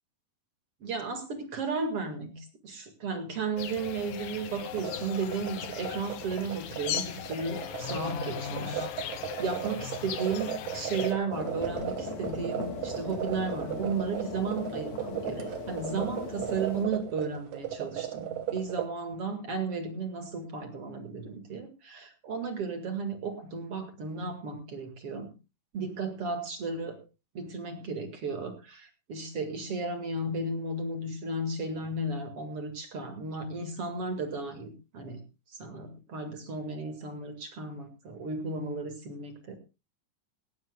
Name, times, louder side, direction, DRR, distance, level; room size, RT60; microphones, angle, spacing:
voice 1, 0.8-8.9 9.4-25.3 25.7-27.0 27.3-35.2 35.5-39.6, right 4 dB, 45° right, 6 dB, 2.6 m, -34 dB
sound 1, 3.6-11.1, left 10 dB, 85° left, 3.1 m, -38 dB
sound 2, 4.6-18.9, right 11 dB, 75° right, 3.0 m, -37 dB
sound 3, 11.3-16.9, left 5 dB, 60° left, 3.5 m, -39 dB
18.5 x 17.5 x 2.3 m, 0.29 s
omnidirectional pair, 3.8 m